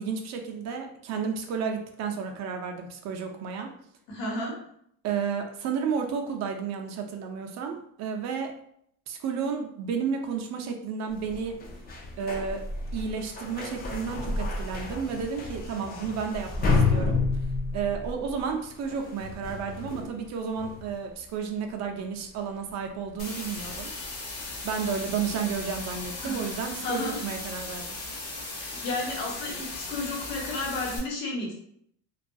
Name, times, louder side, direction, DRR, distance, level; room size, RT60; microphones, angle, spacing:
voice 1, 0.0-3.7 5.0-8.6 9.1-11.6 12.2-12.7 12.9-17.2 17.7-23.9 24.6-28.0, right 6 dB, 50° right, 3 dB, 0.4 m, -32 dB
voice 2, 4.1-4.5 26.2-26.5 26.8-27.2 28.5-31.5, left 2 dB, 80° left, -2 dB, 1.0 m, -32 dB
sound 1, 11.1-21.4 21.8-22.0 22.3-26.6, left 3 dB, 25° left, 0.3 m, -32 dB
sound 2, 23.2-31.0, left 2 dB, 55° left, 0.9 m, -37 dB
2.3 x 2.2 x 2.5 m, 0.69 s
cardioid pair, 130°, 37 cm